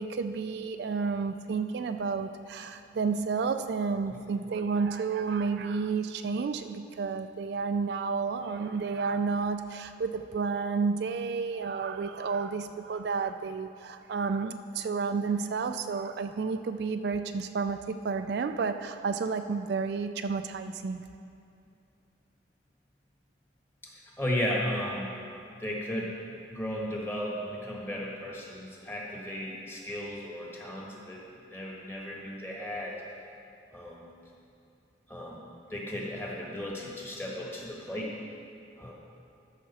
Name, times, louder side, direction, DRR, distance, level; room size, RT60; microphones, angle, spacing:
voice 1, 0.0-21.0, right 5 dB, 60° right, 8 dB, 0.3 m, -31 dB
voice 2, 23.8-25.1 25.6-26.1 26.5-33.0 33.7-34.1 35.1-35.4 35.7-38.1 38.8-38.9, equal, 15° left, -3 dB, 1.3 m, -35 dB
13.0 x 6.0 x 4.1 m, 2.6 s
head